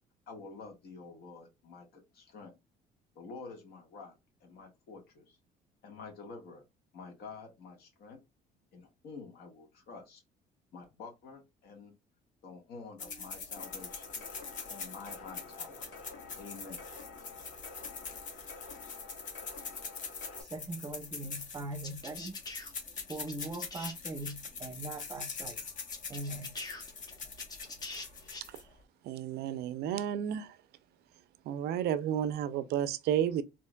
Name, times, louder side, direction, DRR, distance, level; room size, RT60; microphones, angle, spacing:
voice 1, 0.3-2.6 3.2-5.4 5.8-6.6 6.9-8.2 8.7-10.2 10.7-11.9 12.4-14.2 14.7-15.9 16.4-16.8, left 4 dB, 70° left, 1.6 m, -49 dB
sound 1, 13.0-28.8, left 5 dB, 50° left, 1.1 m, -44 dB
sound 2, 13.6-20.4, left 4 dB, 85° left, 1.7 m, -50 dB
voice 2, 20.4-22.4 23.1-25.6 26.1-26.5, right 2 dB, 20° right, 0.7 m, -41 dB
sound 3, 21.8-23.9 24.2-24.3 25.6-25.7 25.9-28.4, left 3 dB, 25° left, 0.8 m, -44 dB
voice 3, 29.0-30.6 31.4-33.4, right 10 dB, 75° right, 0.5 m, -32 dB
4.4 x 2.9 x 2.3 m
cardioid pair, 110°, 17 cm